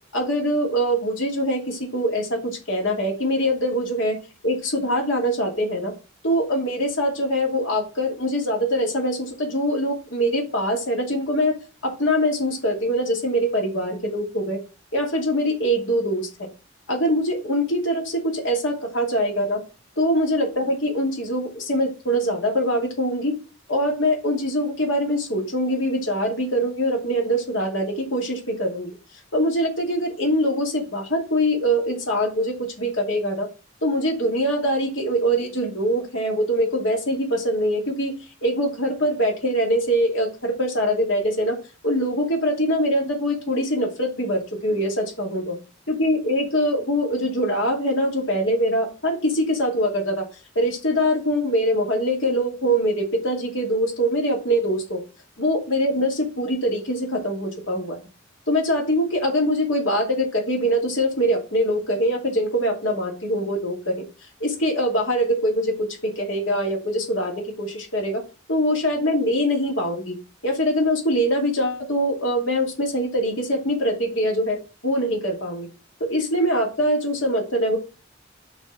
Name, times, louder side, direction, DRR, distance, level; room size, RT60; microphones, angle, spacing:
voice 1, 0.1-4.1 4.4-5.9 6.2-11.5 11.8-14.6 14.9-16.3 16.9-19.6 20.0-23.3 23.7-28.9 29.3-33.5 33.8-38.1 38.4-41.5 41.8-45.5 45.9-50.2 50.5-55.0 55.4-58.0 58.5-63.9 64.4-68.2 68.5-70.1 70.4-74.6 74.8-75.7 76.0-77.8, equal, 75° left, 0 dB, 2.5 m, -23 dB
6.2 x 3.5 x 5.8 m, 0.33 s
head